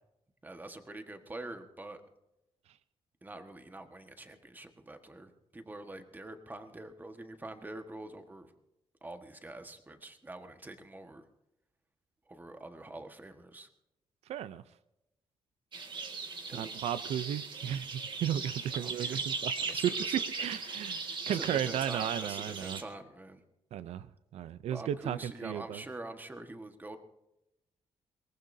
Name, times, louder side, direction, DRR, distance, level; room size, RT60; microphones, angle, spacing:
voice 1, 0.4-2.0 3.2-8.5 9.0-11.3 12.3-13.7 16.5-16.7 18.7-19.2 19.7-20.2 21.3-23.4 24.7-27.0, right 2 dB, 15° right, 7 dB, 1.5 m, -45 dB
voice 2, 14.3-14.6 16.5-17.9 18.2-19.8 20.4-22.8 23.7-24.1 24.3-25.8, right 10 dB, 90° right, 14 dB, 0.5 m, -35 dB
sound 1, 15.7-22.8, right 4 dB, 50° right, 1.9 m, -38 dB
23.0 x 18.5 x 2.7 m, 0.88 s
cardioid pair, 110°, 10 cm